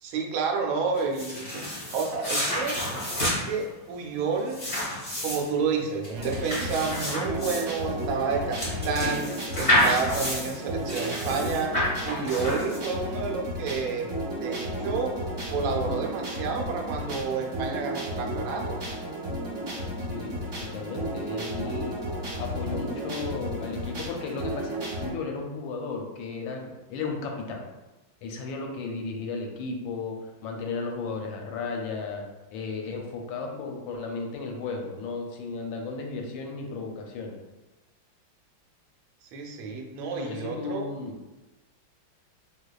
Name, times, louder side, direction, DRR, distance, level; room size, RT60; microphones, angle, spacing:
voice 1, 0.0-2.8 3.2-4.6 5.2-9.3 9.5-11.8 12.0-14.1 14.4-15.1 15.5-18.8 39.3-40.9, right 5 dB, 85° right, 2 dB, 1.4 m, -30 dB
sound 1, 0.9-13.1, left 1 dB, 30° left, 0.9 m, -29 dB
sound 2, 6.1-25.1, equal, 50° right, 1.0 m, -33 dB
voice 2, 20.6-22.0 22.4-27.6 28.2-30.2 30.4-32.2 32.5-37.4 40.1-41.2, left 4 dB, 80° left, 2 dB, 1.3 m, -34 dB
3.9 x 2.8 x 2.3 m, 1.1 s
omnidirectional pair, 2.2 m